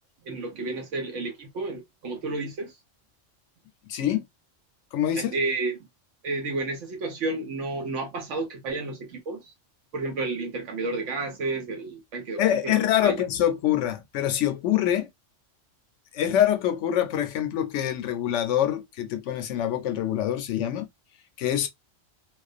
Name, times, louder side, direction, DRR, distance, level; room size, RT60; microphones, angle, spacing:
voice 1, 0.2-2.7 5.2-5.8 6.2-9.5 9.9-13.1, right 3 dB, 75° right, 1.0 m, -31 dB
voice 2, 3.9-4.2 4.9-5.4 12.4-15.1 16.1-20.9 21.4-21.7, left 11 dB, 75° left, 0.9 m, -25 dB
2.4 x 2.2 x 2.4 m
omnidirectional pair, 1.3 m